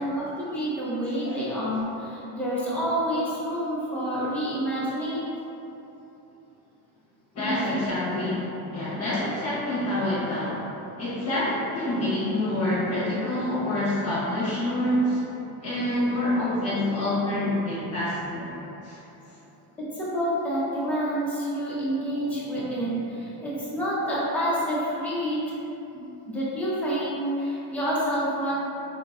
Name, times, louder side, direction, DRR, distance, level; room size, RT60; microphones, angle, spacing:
voice 1, 0.0-5.2 7.4-7.9 19.8-25.6 25.9-28.7, equal, 5° left, -10 dB, 1.0 m, -28 dB
voice 2, 7.3-15.2 15.6-19.0, left 1 dB, 35° left, -10 dB, 1.2 m, -27 dB
3.7 x 3.7 x 2.4 m, 3.0 s
cardioid pair, 125°, 44 cm